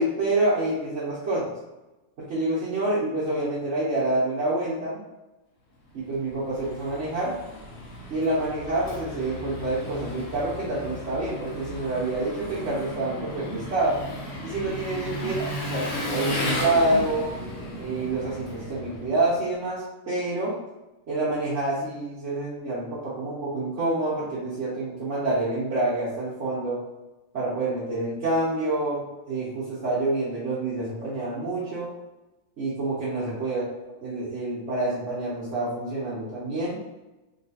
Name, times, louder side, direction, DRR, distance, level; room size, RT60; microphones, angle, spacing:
voice 1, 0.0-1.5 2.2-5.0 5.9-7.3 8.1-14.0 14.4-17.2 17.7-20.5 21.1-26.8 27.3-31.9 32.6-33.6 34.0-36.8, right 2 dB, 65° right, -10 dB, 1.2 m, -27 dB
Engine, 6.0-19.6, left 1 dB, 80° left, 1.2 m, -34 dB
3.1 x 2.8 x 2.8 m, 1.0 s
omnidirectional pair, 1.3 m